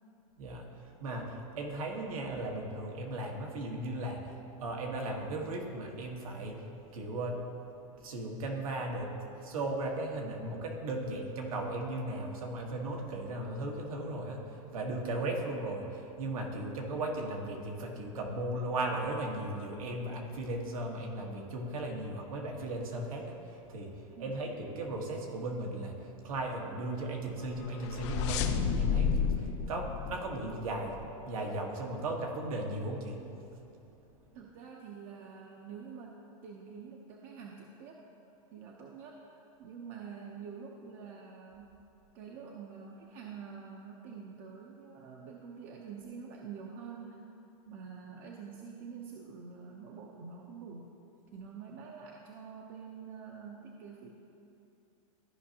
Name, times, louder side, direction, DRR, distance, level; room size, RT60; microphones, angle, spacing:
voice 1, 0.4-31.0 31.2-33.2, right 2 dB, 80° right, 1 dB, 1.4 m, -37 dB
sound 1, 27.4-31.0, left 6 dB, 55° left, 0.6 m, -31 dB
voice 2, 34.3-38.0 38.5-41.8 42.1-47.2 47.6-50.9 51.3-54.1, right 6 dB, 45° right, -1 dB, 0.7 m, -47 dB
14.0 x 5.2 x 2.9 m, 2.8 s
supercardioid pair, 140°, 18 cm